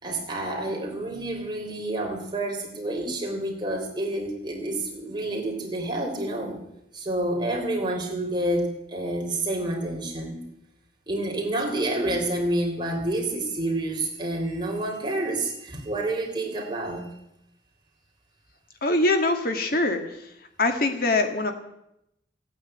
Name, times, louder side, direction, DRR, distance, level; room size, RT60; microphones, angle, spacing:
voice 1, 0.0-6.6 6.9-10.4 11.1-17.1, right 1 dB, 25° right, 0 dB, 3.4 m, -28 dB
voice 2, 18.8-20.3 20.6-21.5, left 2 dB, 55° left, 5 dB, 1.8 m, -23 dB
16.0 x 8.9 x 8.9 m, 0.83 s
head